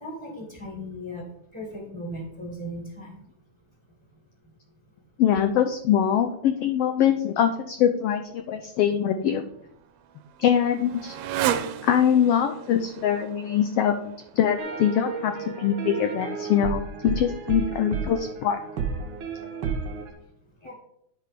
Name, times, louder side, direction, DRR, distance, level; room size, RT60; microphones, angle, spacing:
voice 1, 0.0-1.2 1.5-3.1 20.6-20.7, equal, 15° right, -1 dB, 1.4 m, -37 dB
voice 2, 5.2-9.4 10.4-11.2 11.8-18.6, left 9 dB, 80° left, 7 dB, 1.3 m, -23 dB
Motorcycle, 9.3-14.7, right 10 dB, 80° right, 1.8 m, -34 dB
sound 1, 14.6-20.1, right 5 dB, 60° right, 1.4 m, -32 dB
10.5 x 4.7 x 5.0 m, 0.77 s
omnidirectional pair, 3.4 m